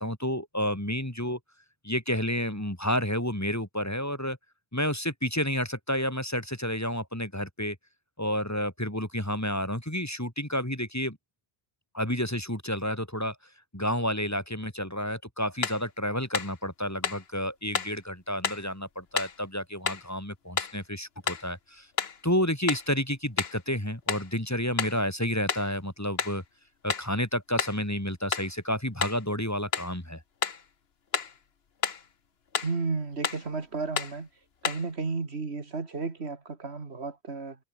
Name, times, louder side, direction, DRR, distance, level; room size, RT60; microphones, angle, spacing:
voice 1, 0.0-1.4 1.8-4.4 4.7-7.8 8.2-11.2 11.9-13.4 13.7-21.9 22.2-26.4 26.8-30.2, equal, 15° left, 3.0 m, -30 dB
sound 1, 15.6-15.9 16.3-16.6 17.0-17.3 17.7-18.0 18.4-18.7 19.2-19.4 19.9-20.1 20.6-20.8 21.3-21.5 22.0-22.2 22.7-22.9 23.4-23.6 24.1-24.3 24.8-25.0 25.5-25.7 26.2-26.4 26.9-27.1 27.6-27.8 28.3-28.5 29.0-29.2 29.7-30.0 30.4-30.6 31.1-31.4 31.8-32.1 32.5-32.8 33.2-33.5 34.0-34.2 34.6-34.9, left 6 dB, 70° left, 1.5 m, -31 dB
voice 2, 32.6-34.3 34.6-37.6, right 4 dB, 80° right, 2.5 m, -33 dB
omnidirectional pair, 1.1 m